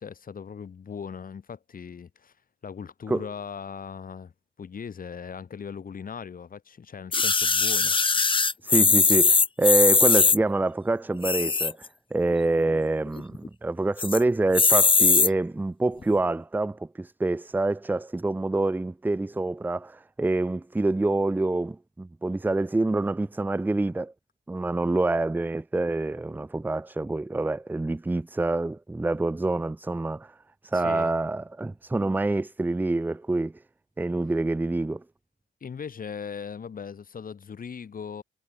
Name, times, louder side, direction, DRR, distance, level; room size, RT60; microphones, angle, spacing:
voice 1, 0.0-2.3 2.6-4.3 4.6-8.5 30.7-31.1 35.6-38.2, left 6 dB, 45° left, 5.4 m, -39 dB
sound 1, 7.1-10.4 11.1-11.9 12.3-12.4 12.6-12.7 13.1-13.5 14.0-14.2 14.5-15.3 16.0-16.1, left 4 dB, 25° left, 1.2 m, -20 dB
voice 2, 8.6-24.1 24.5-30.3 30.6-33.5 34.0-35.0, right 2 dB, 10° right, 0.5 m, -26 dB
cardioid pair, 90°, 20 cm